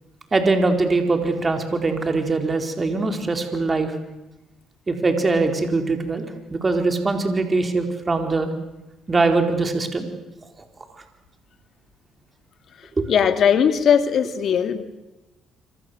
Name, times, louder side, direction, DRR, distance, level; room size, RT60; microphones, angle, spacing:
voice 1, 0.3-3.9 4.9-8.5 9.1-10.1 13.0-13.1, right 3 dB, 30° right, 5 dB, 4.4 m, -22 dB
voice 2, 13.1-14.8, left 8 dB, 60° left, 9 dB, 2.6 m, -19 dB
26.5 x 26.0 x 8.2 m, 0.99 s
supercardioid pair, 70°, 0 cm